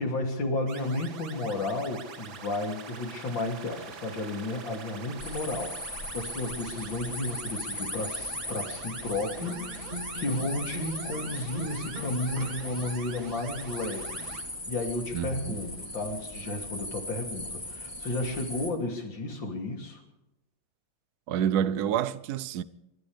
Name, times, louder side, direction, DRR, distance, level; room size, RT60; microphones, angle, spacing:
voice 1, 0.0-9.9 10.1-14.4 14.7-20.0, left 2 dB, 75° left, 3.6 m, -33 dB
sound 1, 0.7-14.4, right 6 dB, 90° right, 2.3 m, -44 dB
sound 2, 5.2-18.7, left 1 dB, 15° left, 3.3 m, -39 dB
sound 3, 9.4-13.4, equal, 25° right, 1.5 m, -41 dB
voice 2, 15.1-15.6 21.3-22.6, right 9 dB, 65° right, 1.1 m, -28 dB
29.0 x 14.0 x 3.4 m
omnidirectional pair, 2.1 m